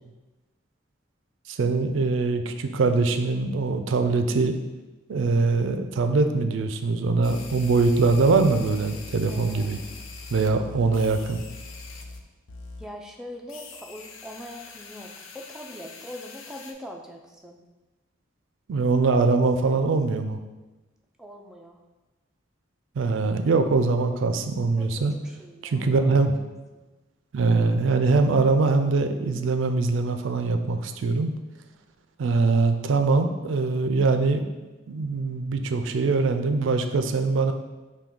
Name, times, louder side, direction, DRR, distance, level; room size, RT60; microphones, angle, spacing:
voice 1, 1.5-4.6 5.1-9.8 10.3-11.4 18.7-20.4 23.0-25.1 25.6-26.3 27.3-31.3 32.2-34.4 34.9-37.5, right 3 dB, 75° right, 8 dB, 0.4 m, -22 dB
sound 1, 7.2-12.2 12.5-12.9 13.5-16.7, left 3 dB, 90° left, 0.5 m, -42 dB
voice 2, 9.3-10.0 12.8-17.6 19.1-19.9 21.2-21.8 24.8-26.1 26.7-26.8, left 1 dB, 5° right, 1 dB, 0.4 m, -42 dB
5.8 x 2.2 x 3.7 m, 1.1 s
head